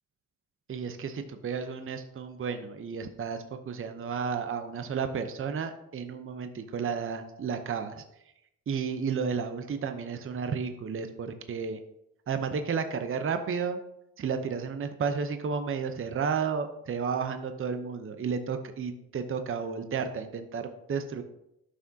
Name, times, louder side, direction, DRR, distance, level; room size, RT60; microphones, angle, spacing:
voice 1, 0.7-8.0 8.7-11.8 12.3-13.8 14.2-21.2, right 6 dB, 40° right, 8 dB, 0.7 m, -32 dB
11.0 x 6.0 x 2.7 m, 0.82 s
cardioid pair, 80°, 34 cm